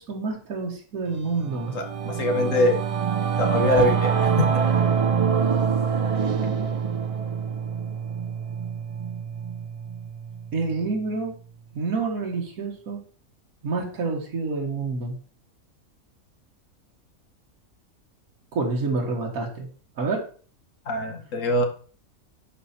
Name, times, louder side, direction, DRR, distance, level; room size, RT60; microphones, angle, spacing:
voice 1, 0.0-1.8 3.8-3.9 10.5-11.3 11.7-13.0 13.6-15.2 18.5-19.7 20.0-20.2, right 3 dB, 80° right, 0 dB, 1.9 m, -28 dB
Singing / Musical instrument, 1.2-10.9, right 7 dB, 40° right, 0.4 m, -25 dB
voice 2, 1.7-2.8 3.4-4.6 20.9-21.6, left 2 dB, 65° left, 6 dB, 1.7 m, -23 dB
11.0 x 4.5 x 4.3 m, 0.42 s
omnidirectional pair, 1.5 m